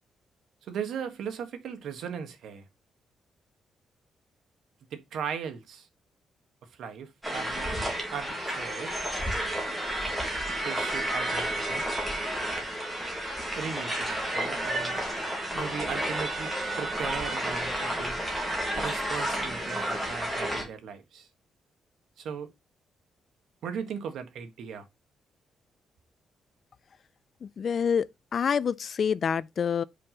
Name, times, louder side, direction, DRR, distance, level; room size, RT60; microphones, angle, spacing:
voice 1, 0.6-2.6 4.9-5.9 6.8-8.9 10.6-11.8 13.5-15.0 15.5-16.5 16.8-18.2 18.7-21.3 22.2-22.5 23.6-24.8, right 7 dB, 65° right, 1.4 m, -37 dB
sound 1, 7.2-20.6, right 1 dB, 5° right, 2.5 m, -31 dB
voice 2, 27.4-28.1 28.3-29.8, left 7 dB, 40° left, 0.3 m, -27 dB
5.6 x 5.2 x 5.9 m
cardioid pair, 180°, 0 cm